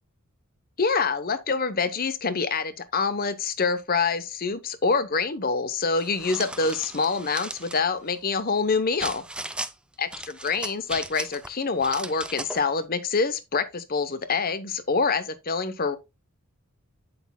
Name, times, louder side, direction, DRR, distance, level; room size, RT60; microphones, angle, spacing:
voice 1, 0.8-9.2 10.0-16.0, left 4 dB, 40° left, 0.8 m, -26 dB
sound 1, 5.9-7.8 9.0-9.7 10.1-11.5 11.8-12.6, right 2 dB, 5° right, 0.3 m, -36 dB
8.4 x 7.7 x 2.2 m
head